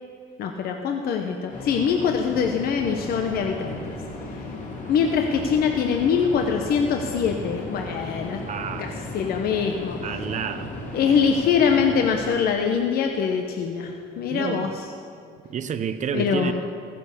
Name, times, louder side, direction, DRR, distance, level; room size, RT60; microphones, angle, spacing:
voice 1, 0.4-4.0 4.3-4.4 4.9-8.4 8.8-10.0 10.9-14.8 16.1-16.5, left 6 dB, 65° left, 3 dB, 1.0 m, -23 dB
sound 1, 1.5-12.3, left 2 dB, 50° left, 3.1 m, -35 dB
voice 2, 8.5-8.9 10.0-10.7 14.3-14.7 15.5-16.5, right 7 dB, 45° right, 11 dB, 0.8 m, -29 dB
14.5 x 10.5 x 6.7 m, 2.3 s
cardioid pair, 110°, 17 cm